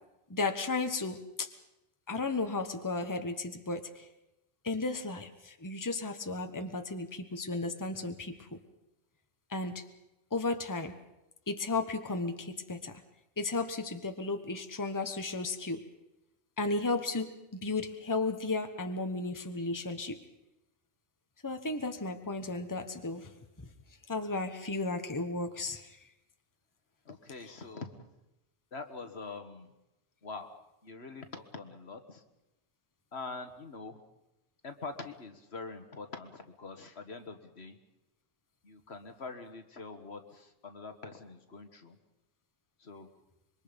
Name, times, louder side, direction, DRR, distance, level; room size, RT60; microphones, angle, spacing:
voice 1, 0.3-1.5 2.1-4.1 4.6-8.6 9.5-9.8 10.3-10.9 11.5-13.0 13.4-15.8 16.6-17.3 17.6-20.2 21.4-23.3 24.1-26.0, left 3 dB, 15° left, 7 dB, 1.3 m, -34 dB
voice 2, 27.1-27.9 28.7-29.7 30.2-30.5 30.8-32.2 33.1-34.0 34.6-37.8 38.6-42.0 42.8-43.1, left 3 dB, 70° left, 7 dB, 1.9 m, -44 dB
26.5 x 23.0 x 5.3 m, 0.93 s
omnidirectional pair, 1.1 m